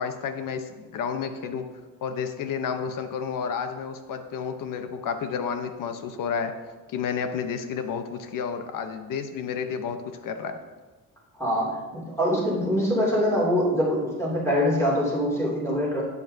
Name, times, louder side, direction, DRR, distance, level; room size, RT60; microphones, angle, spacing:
voice 1, 0.0-1.7 2.0-6.5 6.9-10.6, left 6 dB, 65° left, 7 dB, 0.9 m, -31 dB
voice 2, 11.4-16.0, equal, 10° left, -5 dB, 2.6 m, -24 dB
12.0 x 8.4 x 2.7 m, 1.3 s
cardioid pair, 165°, 35 cm